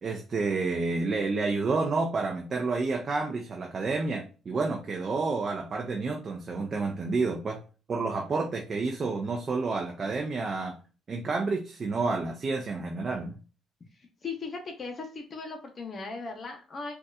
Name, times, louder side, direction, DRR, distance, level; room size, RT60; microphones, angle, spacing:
voice 1, 0.0-7.6 7.9-10.8 11.1-13.4, right 3 dB, 45° right, 2 dB, 0.6 m, -29 dB
voice 2, 14.2-16.9, left 4 dB, 50° left, 4 dB, 0.9 m, -37 dB
3.9 x 2.4 x 2.4 m, 0.35 s
supercardioid pair, 60°, 0 cm